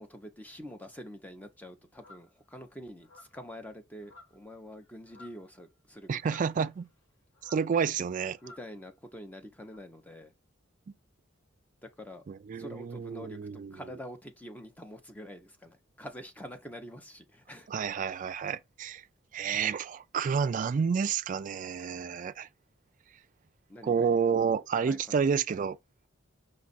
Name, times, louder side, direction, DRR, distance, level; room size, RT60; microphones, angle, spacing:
voice 1, 0.0-6.4 8.4-10.3 11.8-12.2 12.6-17.7 23.7-24.2 24.8-25.2, equal, 10° left, 0.7 m, -46 dB
sound 1, 1.9-2.3 3.0-3.5 4.0-4.5 4.8-5.5 6.2-7.0 7.3-7.8 8.3-8.7 9.6-9.8, left 2 dB, 75° left, 1.5 m, -55 dB
voice 2, 6.1-6.9 7.4-8.4 12.3-13.7 17.7-19.0 19.3-22.5 23.8-25.8, right 6 dB, 40° right, 0.3 m, -30 dB
5.2 x 2.4 x 4.0 m
head